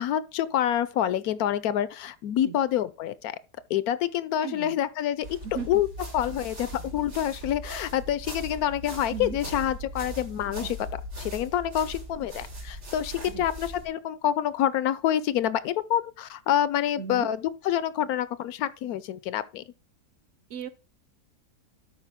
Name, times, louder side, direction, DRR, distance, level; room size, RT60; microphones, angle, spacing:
voice 1, 0.0-3.4 3.7-5.3 5.7-5.9 6.1-10.8 11.2-19.6, left 11 dB, 70° left, 1.0 m, -27 dB
voice 2, 4.4-4.8 5.4-5.7 9.1-9.4 10.5-10.7 13.3-13.5 17.0-17.3 20.5-20.7, right 7 dB, 60° right, 0.9 m, -37 dB
sound 1, 5.2-13.9, equal, 80° right, 3.7 m, -39 dB
12.5 x 4.9 x 3.6 m
omnidirectional pair, 1.7 m